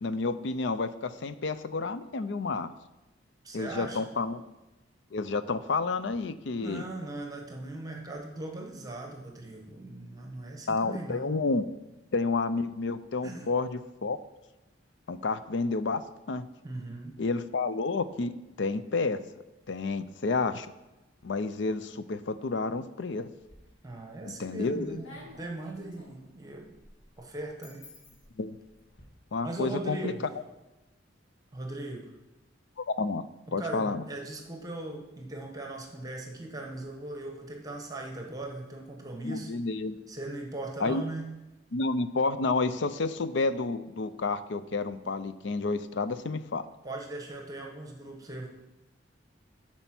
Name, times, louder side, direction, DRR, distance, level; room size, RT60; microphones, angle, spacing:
voice 1, 0.0-2.7 3.5-4.4 5.1-6.8 10.7-11.7 12.1-14.2 15.1-16.4 17.2-19.2 19.7-20.7 21.2-23.3 24.2-25.0 28.4-28.6 29.3-30.1 32.8-33.2 33.5-34.0 39.2-40.0 40.8-41.0 41.7-46.6, left 3 dB, 65° left, 12 dB, 0.5 m, -30 dB
voice 2, 3.4-4.1 6.6-11.4 13.2-13.5 16.6-17.2 23.8-26.7 27.2-27.9 29.4-30.2 31.5-32.1 33.6-39.5 40.1-41.3 46.8-48.5, right 2 dB, 20° right, 1 dB, 1.1 m, -39 dB
sound 1, 23.4-24.0 24.4-29.0, left 1 dB, 85° left, 2.5 m, -53 dB
11.0 x 4.5 x 5.9 m, 1.0 s
head